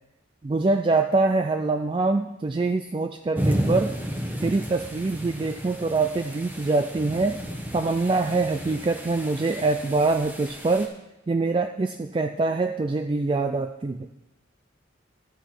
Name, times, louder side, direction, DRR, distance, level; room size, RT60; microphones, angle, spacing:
voice 1, 0.4-3.9 4.4-7.4 7.7-10.9 11.3-14.1, right 3 dB, 25° right, 6 dB, 0.3 m, -24 dB
sound 1, 3.4-10.9, equal, 10° right, 1.0 m, -32 dB
12.5 x 8.1 x 4.4 m, 0.94 s
head